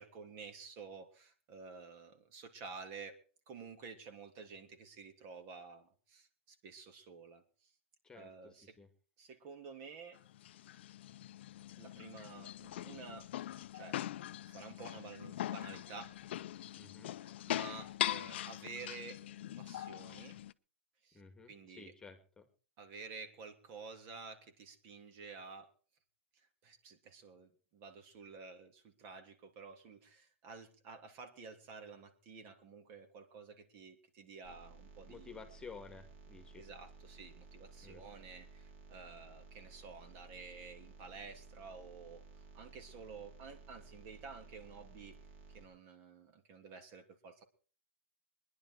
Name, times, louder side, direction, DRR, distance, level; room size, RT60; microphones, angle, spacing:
voice 1, 0.0-3.2 3.5-7.4 8.1-8.8 9.2-10.2 11.8-13.3 13.7-14.0 14.5-16.1 17.1-19.2 19.6-20.4 21.0-21.2 21.5-21.9 22.8-25.7 26.6-35.4 36.6-42.2 42.5-45.2 45.5-47.4, right 5 dB, 40° right, 7 dB, 2.9 m, -51 dB
voice 2, 8.0-8.9 16.8-17.2 21.1-22.5 35.1-36.6 37.8-38.1, left 5 dB, 10° left, 7 dB, 2.1 m, -53 dB
sound 1, 10.2-20.5, left 13 dB, 65° left, 0.6 m, -42 dB
sound 2, 34.4-45.7, right 3 dB, 55° right, 4.2 m, -56 dB
21.0 x 11.0 x 4.7 m, 0.40 s
hypercardioid pair, 125°, 7 cm